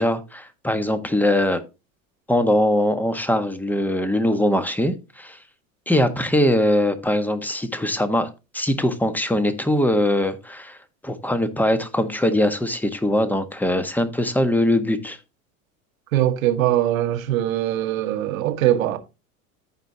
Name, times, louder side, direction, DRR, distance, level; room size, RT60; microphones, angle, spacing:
voice 1, 0.0-1.6 2.3-5.4 5.9-10.8 11.0-15.2, left 1 dB, 5° left, 1.4 m, -21 dB
voice 2, 16.1-19.0, right 13 dB, 75° right, 1.5 m, -21 dB
14.5 x 5.2 x 2.9 m
hypercardioid pair, 90°, 41 cm